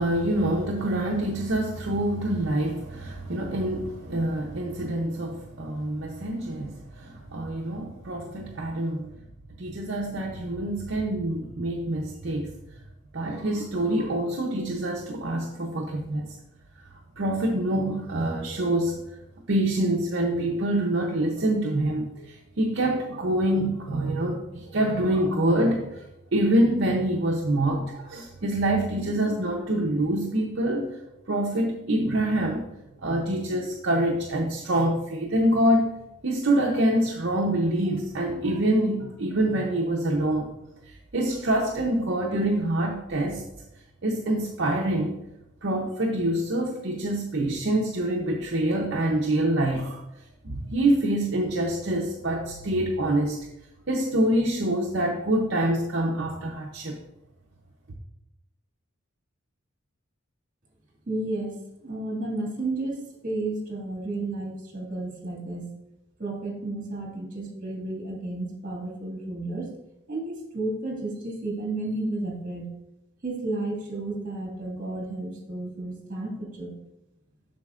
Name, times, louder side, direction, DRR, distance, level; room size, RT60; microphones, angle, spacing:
voice 1, 0.0-9.2 9.6-12.5 13.1-16.4 17.2-19.0 19.5-26.0 26.3-30.9 31.3-32.7 33.0-35.9 36.2-40.5 40.8-43.4 44.0-45.2 45.6-50.0 50.4-53.5 53.9-57.0, right 1 dB, 55° right, -1 dB, 0.7 m, -26 dB
voice 2, 61.1-61.6 61.8-65.7 66.2-69.7 70.1-72.7 73.2-76.7, right 2 dB, 40° right, -1 dB, 1.9 m, -32 dB
7.5 x 6.4 x 2.5 m, 0.89 s
head